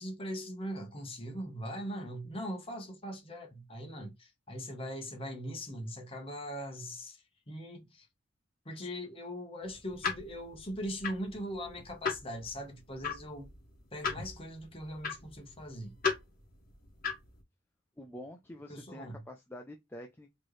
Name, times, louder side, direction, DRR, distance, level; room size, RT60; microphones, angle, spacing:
voice 1, 0.0-8.1 8.6-13.5 13.9-15.9 18.7-19.2, equal, 30° left, 1.1 m, -40 dB
sound 1, 9.6-17.4, left 5 dB, 45° left, 1.7 m, -38 dB
voice 2, 18.0-20.3, left 1 dB, 10° left, 0.4 m, -47 dB
4.3 x 3.1 x 3.2 m
head